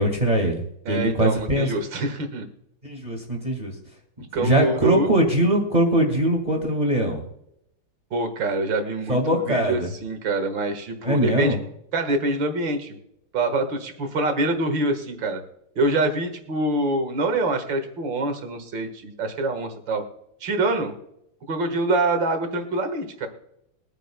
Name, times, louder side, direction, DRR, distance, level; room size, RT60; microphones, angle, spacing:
voice 1, 0.0-1.7 2.8-3.8 4.2-7.2 9.1-9.9 11.0-11.6, right 1 dB, 20° right, 1 dB, 1.9 m, -22 dB
voice 2, 0.9-2.5 4.3-5.1 8.1-11.6 11.9-13.0 13.3-15.4 15.8-20.0 20.4-20.9 21.5-23.3, right 2 dB, 70° right, 6 dB, 2.4 m, -25 dB
22.0 x 9.3 x 2.3 m, 0.77 s
omnidirectional pair, 2.1 m